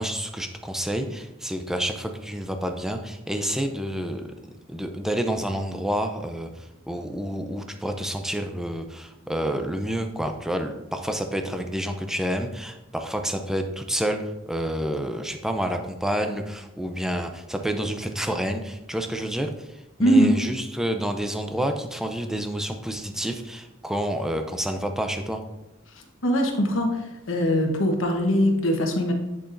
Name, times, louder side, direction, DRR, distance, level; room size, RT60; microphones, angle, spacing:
voice 1, 0.0-4.2 4.7-6.5 6.9-25.4, equal, ahead, 5 dB, 0.5 m, -29 dB
voice 2, 20.0-20.4 26.2-27.0 27.3-29.1, equal, 75° left, 3 dB, 1.2 m, -21 dB
7.8 x 7.0 x 2.6 m, 0.95 s
head